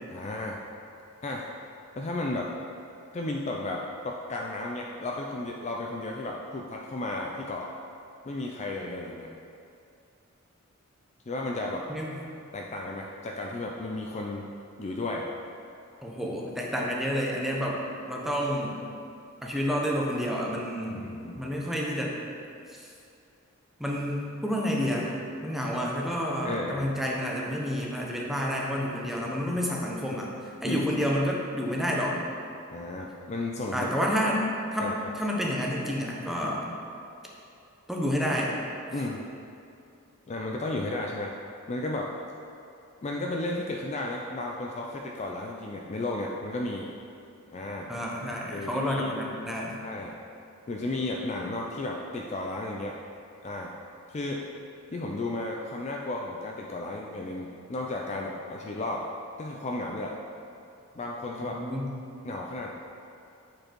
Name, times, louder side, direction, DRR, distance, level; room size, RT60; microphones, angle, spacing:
voice 1, 0.1-0.6 1.2-1.5 2.0-2.5 3.1-7.7 8.2-9.3 11.3-11.8 12.5-14.5 14.8-15.3 20.9-21.4 26.4-26.9 30.6-30.9 32.7-33.9 34.8-34.9 38.9-39.2 40.3-41.3 41.7-42.1 43.0-46.9 47.5-47.9 48.5-49.2 49.8-50.2 50.7-53.0 53.4-53.7 54.1-54.4 54.9-59.1 59.4-60.1 61.0-61.6 62.2-62.7, left 2 dB, 30° left, -1 dB, 0.4 m, -33 dB
voice 2, 16.0-18.8 19.4-21.0 21.4-22.2 22.7-22.9 23.8-25.1 25.4-32.1 33.7-34.4 34.7-36.7 37.9-38.5 47.9-49.8 61.4-61.9, equal, ahead, -3 dB, 0.8 m, -29 dB
7.6 x 4.6 x 4.5 m, 2.6 s
head